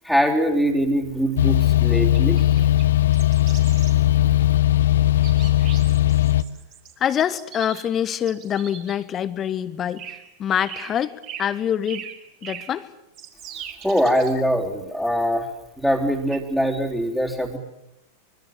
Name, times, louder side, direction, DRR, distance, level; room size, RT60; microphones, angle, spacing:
voice 1, 0.0-2.6 13.5-15.5 15.8-17.6, equal, 5° right, -5 dB, 3.5 m, -23 dB
sound 1, 1.4-6.4, left 13 dB, 60° left, 1.0 m, -18 dB
sound 2, 2.0-2.8 3.1-4.0 5.2-6.9 7.2-9.0 10.0-10.3 10.7-11.0 11.2-11.5 11.9-12.7 13.1-14.3 16.3-16.4, right 9 dB, 40° right, 4.8 m, -40 dB
voice 2, 7.0-10.1 10.4-12.1 12.4-12.9, left 9 dB, 25° left, 15 dB, 1.4 m, -25 dB
25.5 x 24.0 x 7.6 m, 0.88 s
figure-of-eight pair, 90°, 0 cm